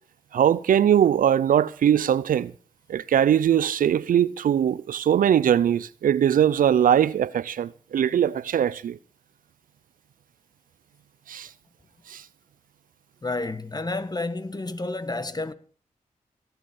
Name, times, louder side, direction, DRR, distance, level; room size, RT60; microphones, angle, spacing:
voice 1, 0.3-2.5 2.9-9.0 11.3-11.5 12.1-12.2, right 9 dB, 80° right, 0.6 m, -21 dB
voice 2, 13.2-15.5, left 2 dB, 30° left, 1.5 m, -30 dB
17.5 x 8.1 x 6.9 m
cardioid pair, 50°, 14 cm